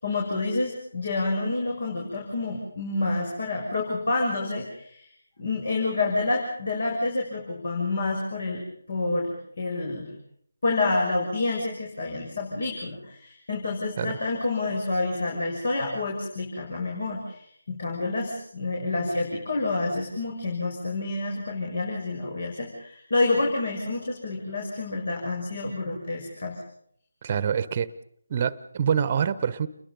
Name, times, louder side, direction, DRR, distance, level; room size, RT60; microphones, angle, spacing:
voice 1, 0.0-5.1 5.4-8.6 8.9-10.1 10.6-26.6, left 2 dB, 55° left, 6.7 m, -28 dB
voice 2, 27.2-27.9 28.3-29.7, right 7 dB, 30° right, 1.2 m, -25 dB
30.0 x 22.5 x 5.4 m
figure-of-eight pair, 155°, 0 cm